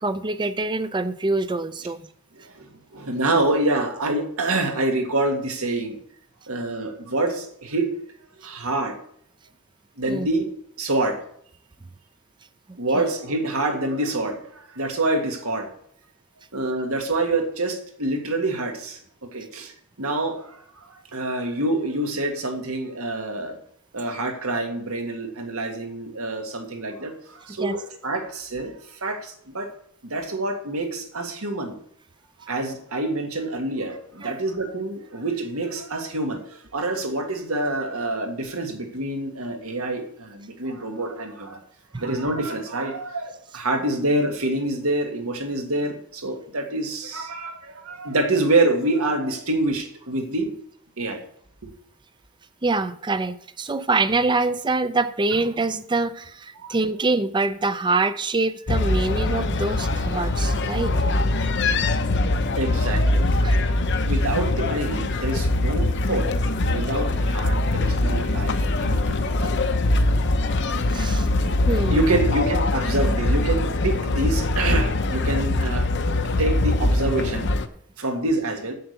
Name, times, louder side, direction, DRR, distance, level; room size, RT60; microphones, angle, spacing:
voice 1, 0.0-2.0 10.1-10.3 12.9-13.0 27.6-27.8 34.2-34.3 41.9-42.0 52.6-60.9 63.4-63.6 70.9-71.3 71.7-72.0, right 3 dB, 20° right, 13 dB, 0.5 m, -25 dB
voice 2, 2.3-6.0 6.5-7.9 8.4-9.0 10.0-10.4 10.8-11.2 12.8-15.7 16.5-19.7 20.0-23.6 23.9-29.7 30.0-31.8 32.5-41.6 42.0-50.5 51.0-51.2 56.6-56.7 62.6-63.7 64.0-66.3 66.6-69.6 71.9-75.9 76.4-77.5 78.0-78.7, right 2 dB, 85° right, 4 dB, 1.9 m, -26 dB
sound 1, 58.7-77.7, left 2 dB, 55° left, 0.8 m, -22 dB
7.7 x 6.8 x 8.0 m, 0.65 s
head